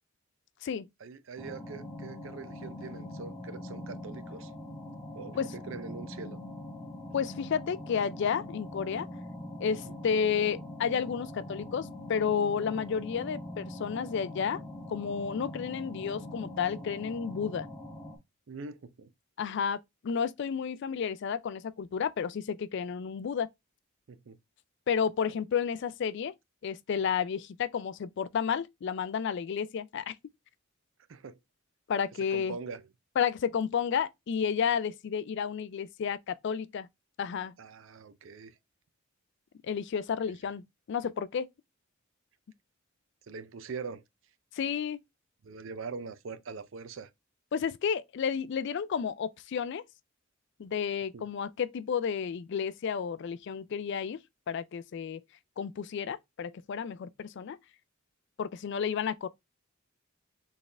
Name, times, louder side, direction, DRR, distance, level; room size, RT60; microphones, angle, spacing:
voice 1, 1.0-4.5 5.1-6.4 7.1-7.2 9.8-9.9 18.5-19.1 24.1-24.4 31.1-31.4 32.3-32.8 37.6-38.6 43.3-44.0 45.4-47.1 51.1-51.2, right 4 dB, 65° right, 0.5 m, -42 dB
sound 1, 1.4-18.2, left 1 dB, 5° left, 1.0 m, -43 dB
voice 2, 7.1-9.1 9.6-14.6 14.9-17.7 19.4-23.5 24.9-26.3 26.6-30.1 31.9-32.6 33.2-36.9 37.2-37.5 39.6-41.5 44.5-45.0 47.5-49.8 50.6-54.2 54.5-55.2 55.6-57.6 58.4-59.3, left 7 dB, 55° left, 0.3 m, -31 dB
4.2 x 3.5 x 3.2 m
head